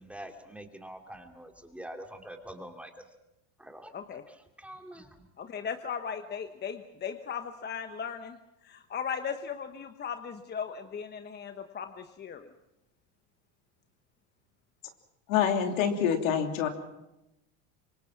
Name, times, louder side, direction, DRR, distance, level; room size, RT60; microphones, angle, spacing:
voice 1, 0.0-3.0 3.6-3.9 4.3-5.2, right 1 dB, 5° right, 4 dB, 2.6 m, -45 dB
voice 2, 5.4-8.4 8.6-12.5, left 7 dB, 25° left, 8 dB, 1.1 m, -37 dB
voice 3, 15.3-16.7, left 8 dB, 85° left, 5 dB, 3.2 m, -26 dB
25.5 x 23.0 x 5.9 m, 0.91 s
supercardioid pair, 120°, 39 cm